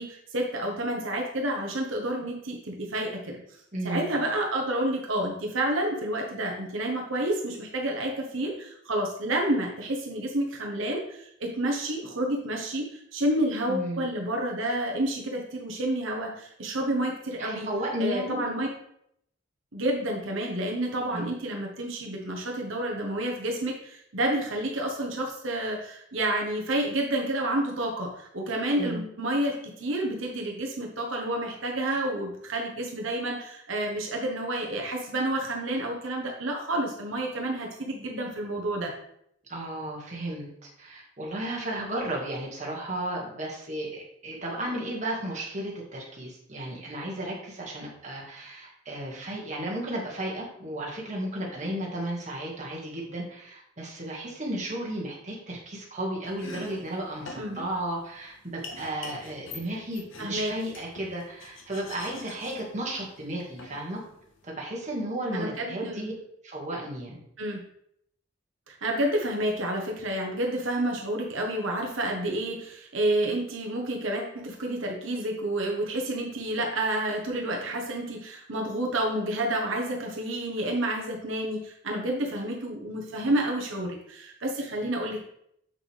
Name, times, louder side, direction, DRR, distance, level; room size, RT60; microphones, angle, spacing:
voice 1, 0.0-3.4 3.8-17.7 18.0-18.7 19.7-38.9 57.4-57.6 60.2-60.5 65.3-66.1 67.4-67.6 68.7-85.2, right 1 dB, 85° right, 0 dB, 1.3 m, -29 dB
voice 2, 3.7-4.1 13.7-14.0 17.4-18.4 21.1-21.3 28.8-29.0 39.5-64.0 64.4-66.1 66.4-67.2, right 1 dB, 35° right, -2 dB, 2.0 m, -34 dB
Domestic sounds home sounds, 56.2-64.5, left 3 dB, 85° left, 1.4 m, -46 dB
7.3 x 6.3 x 3.4 m, 0.73 s
head